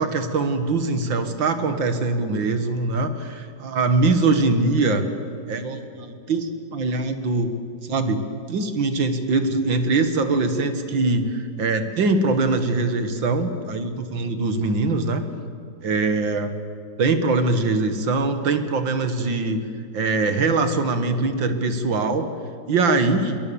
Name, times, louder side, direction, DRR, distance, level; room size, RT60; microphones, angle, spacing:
voice 1, 0.0-5.1 5.5-7.5 7.8-8.2 8.5-15.2 15.8-16.5 17.0-19.6 19.9-22.3 22.7-23.4, right 3 dB, 80° right, 8 dB, 2.3 m, -22 dB
26.5 x 23.0 x 7.1 m, 2.4 s
omnidirectional pair, 2.1 m